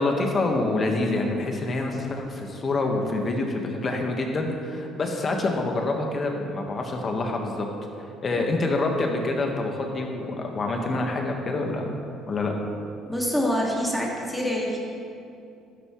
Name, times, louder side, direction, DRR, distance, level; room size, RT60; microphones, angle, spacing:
voice 1, 0.0-7.7 8.2-11.9 12.3-12.5, left 2 dB, 35° left, 2 dB, 1.5 m, -26 dB
voice 2, 13.1-14.8, equal, 5° left, -3 dB, 2.2 m, -26 dB
12.0 x 11.5 x 3.2 m, 2.6 s
cardioid pair, 105°, 0 cm